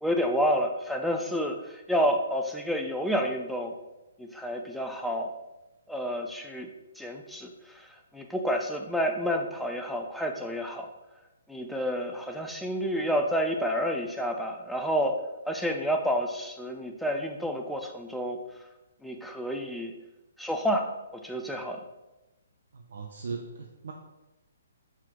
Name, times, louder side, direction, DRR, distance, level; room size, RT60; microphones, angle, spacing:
voice 1, 0.0-3.7 4.2-5.3 5.9-6.7 7.0-7.9 8.1-10.9 11.5-15.2 15.5-18.4 19.0-19.9 20.4-21.8, equal, ahead, 2 dB, 0.5 m, -29 dB
voice 2, 22.7-23.9, right 4 dB, 65° right, 3 dB, 0.6 m, -38 dB
5.9 x 4.5 x 3.7 m, 1.0 s
figure-of-eight pair, 130°, 0 cm